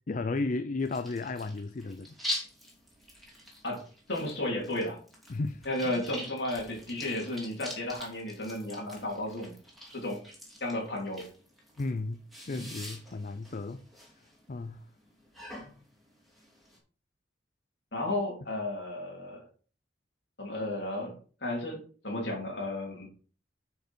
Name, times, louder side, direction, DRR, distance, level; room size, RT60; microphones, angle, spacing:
voice 1, 0.1-2.1 5.3-5.9 11.8-13.9 14.5-14.8, left 3 dB, 45° left, 0.5 m, -34 dB
sound 1, 0.8-16.8, left 1 dB, ahead, 2.9 m, -44 dB
voice 2, 4.1-5.0 5.6-9.5 9.9-10.2 10.6-11.2 12.5-12.6 17.9-19.4 20.4-21.1 21.4-23.1, left 1 dB, 65° left, 3.3 m, -33 dB
9.4 x 5.4 x 4.4 m
head